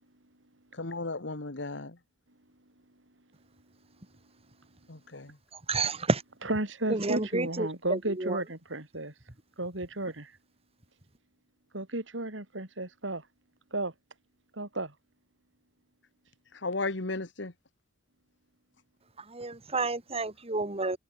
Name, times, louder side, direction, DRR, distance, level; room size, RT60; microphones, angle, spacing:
voice 1, 0.7-2.0 4.9-5.4 16.5-17.5, left 3 dB, 70° left, 1.8 m, -35 dB
voice 2, 5.7-6.2 6.9-8.4 19.3-21.0, right 3 dB, 35° right, 2.2 m, -30 dB
voice 3, 6.4-9.1 9.6-10.3 11.7-13.3 13.7-13.9 14.5-14.9, right 2 dB, 85° right, 4.8 m, -33 dB
head